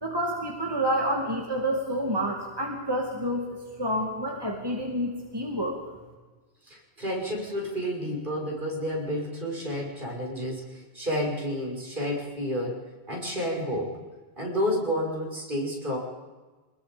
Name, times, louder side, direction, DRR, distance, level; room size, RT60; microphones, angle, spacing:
voice 1, 0.0-5.7, equal, 20° right, 0 dB, 2.6 m, -29 dB
voice 2, 6.7-14.0 14.4-16.0, equal, 50° right, -1 dB, 6.2 m, -30 dB
26.5 x 21.0 x 5.3 m, 1.3 s
omnidirectional pair, 1.1 m